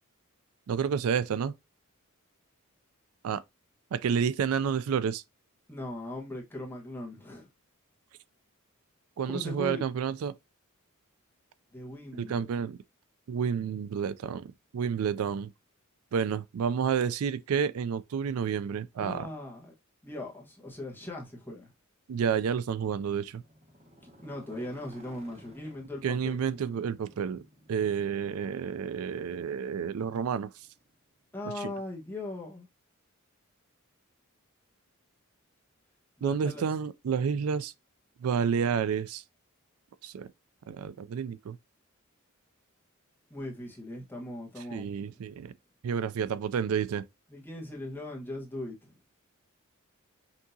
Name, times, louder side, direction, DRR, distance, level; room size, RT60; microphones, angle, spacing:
voice 1, 0.7-1.5 3.2-3.4 3.9-5.2 9.2-10.3 12.2-12.8 13.3-15.5 16.1-19.3 22.1-23.4 26.0-27.4 27.7-30.5 31.6-31.7 36.2-37.7 38.2-39.2 40.0-40.3 40.7-41.6 44.7-45.5 45.8-47.0, right 7 dB, 85° right, 0.4 m, -30 dB
voice 2, 5.7-7.5 9.3-9.8 11.7-12.5 19.0-19.7 20.0-21.7 24.2-26.4 31.3-32.7 36.2-36.6 43.3-45.2 47.3-48.9, left 1 dB, 10° left, 1.2 m, -39 dB
Motorcycle, 23.3-31.3, right 1 dB, 30° right, 1.2 m, -57 dB
5.9 x 2.8 x 2.7 m
head